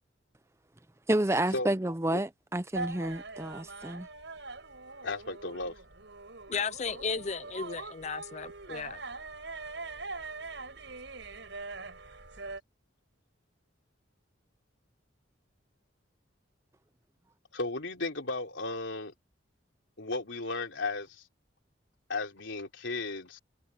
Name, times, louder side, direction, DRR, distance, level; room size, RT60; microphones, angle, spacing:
voice 1, 1.1-4.1, right 1 dB, 15° right, 0.6 m, -30 dB
sound 1, 2.7-12.6, right 3 dB, 75° right, 5.5 m, -42 dB
voice 2, 5.0-5.8 17.5-19.1 20.0-21.3 22.1-23.4, left 3 dB, 90° left, 3.5 m, -35 dB
voice 3, 6.5-9.0, left 5 dB, 35° left, 0.5 m, -35 dB
head